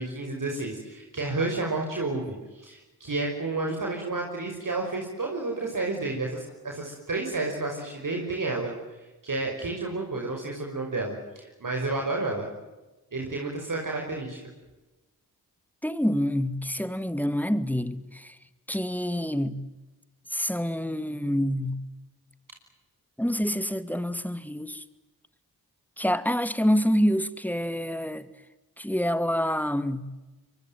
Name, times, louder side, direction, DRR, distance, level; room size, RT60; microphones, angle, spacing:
voice 1, 0.0-8.7 9.2-12.5 13.1-14.4, right 2 dB, 55° right, 5.8 m, -31 dB
voice 2, 15.8-18.3 18.7-19.6 20.3-21.8 23.2-24.8 26.0-28.3 28.8-30.1, equal, 5° left, 2.3 m, -27 dB
25.0 x 23.5 x 9.3 m
supercardioid pair, 40°, 38 cm